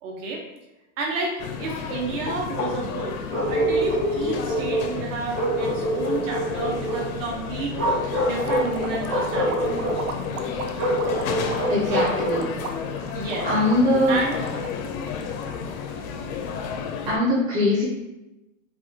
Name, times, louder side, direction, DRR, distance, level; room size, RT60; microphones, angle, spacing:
voice 1, 0.0-0.4 1.0-3.2 3.5-7.8 8.2-9.7 11.7-12.0 13.1-13.5 14.1-14.4, right 3 dB, 65° right, -1 dB, 1.0 m, -30 dB
sound 1, 1.4-17.2, left 6 dB, 85° left, 0.6 m, -32 dB
Bark, 3.3-4.9 5.3-7.1 7.7-8.7 9.1-10.0 10.8-12.4, right 1 dB, 40° right, 1.0 m, -25 dB
sound 2, 8.3-15.7, right 4 dB, 90° right, 0.5 m, -36 dB
voice 2, 11.7-12.5 13.4-14.2 17.1-17.8, left 1 dB, 10° right, -8 dB, 0.4 m, -21 dB
3.4 x 2.2 x 2.7 m, 1.0 s
supercardioid pair, 160°, 42 cm